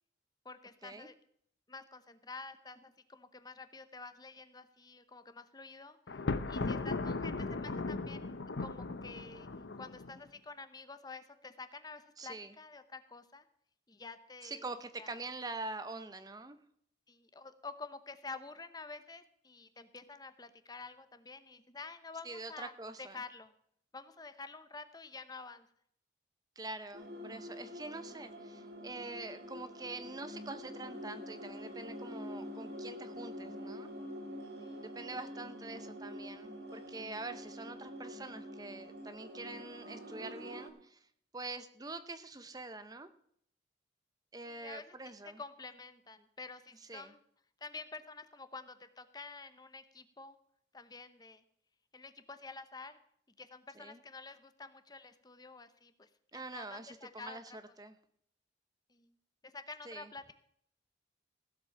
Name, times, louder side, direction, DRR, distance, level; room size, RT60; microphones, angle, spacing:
voice 1, 0.4-1.1 1.7-6.0 6.5-9.5 9.8-13.4 13.9-14.6 15.0-15.1 17.1-22.7 23.0-23.5 23.9-25.7 34.6-34.9 44.4-47.2 47.6-50.4 50.7-51.4 51.9-53.0 53.4-57.4 58.9-59.1 59.4-60.3, left 4 dB, 20° left, 11 dB, 0.8 m, -49 dB
Thunder, 6.1-10.2, left 3 dB, 80° left, 0.7 m, -37 dB
voice 2, 12.2-12.5 14.4-16.6 22.2-23.2 26.6-33.9 34.8-41.1 41.3-43.1 44.3-45.4 46.9-47.1 53.8-54.0 56.3-58.0 59.8-60.1, right 3 dB, 20° right, 10 dB, 0.7 m, -45 dB
sound 1, 26.9-40.7, equal, 65° right, 2.4 m, -46 dB
16.0 x 7.5 x 5.7 m, 0.66 s
head